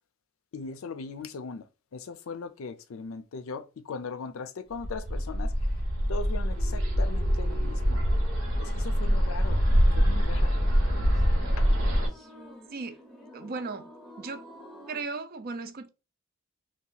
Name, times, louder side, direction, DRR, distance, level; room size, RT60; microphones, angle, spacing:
voice 1, 0.5-1.6 1.9-5.5 6.1-8.0 8.6-9.6 10.0-10.5 11.6-11.7, left 4 dB, 80° left, 0.4 m, -39 dB
Bird, 4.8-12.1, equal, 75° right, 1.0 m, -25 dB
sound 1, 6.5-15.0, right 1 dB, ahead, 0.8 m, -49 dB
voice 2, 13.3-13.9 14.2-14.4 14.9-15.9, right 4 dB, 45° right, 0.5 m, -36 dB
2.8 x 2.3 x 3.8 m
head